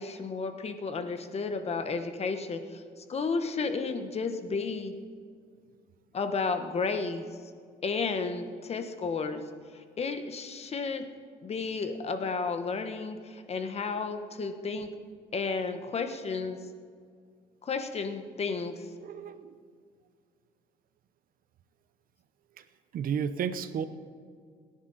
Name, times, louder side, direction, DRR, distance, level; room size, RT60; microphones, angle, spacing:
voice 1, 0.0-2.8 3.1-4.9 6.1-7.3 7.8-9.4 10.0-11.1 11.4-14.9 15.3-16.6 17.6-18.7, left 4 dB, 40° left, 8 dB, 1.4 m, -32 dB
voice 2, 3.6-4.1 13.9-14.1 19.0-19.5 22.6-22.7 22.9-23.8, right 7 dB, 55° right, 11 dB, 1.0 m, -34 dB
27.5 x 10.5 x 4.3 m, 2.1 s
cardioid pair, 110°, 17 cm